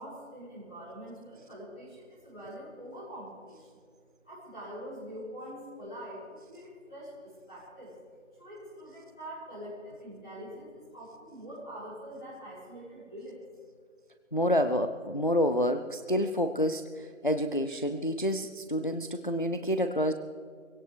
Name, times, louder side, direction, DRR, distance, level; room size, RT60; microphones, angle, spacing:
voice 1, 0.0-3.7 4.2-7.9 8.4-13.4, equal, 5° left, -13 dB, 1.8 m, -44 dB
voice 2, 14.3-20.1, equal, 40° left, 8 dB, 0.5 m, -28 dB
23.0 x 17.0 x 3.3 m, 2.2 s
figure-of-eight pair, 180°, 39 cm